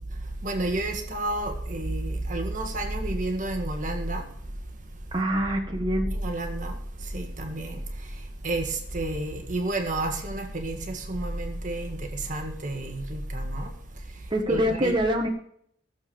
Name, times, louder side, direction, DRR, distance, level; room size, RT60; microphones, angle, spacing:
voice 1, 0.4-4.2 6.1-7.8 8.4-13.7 14.5-14.9, right 2 dB, 45° right, 1.6 m, -30 dB
voice 2, 5.1-6.1 14.3-15.3, equal, 25° right, 1.6 m, -25 dB
16.5 x 7.0 x 7.1 m
head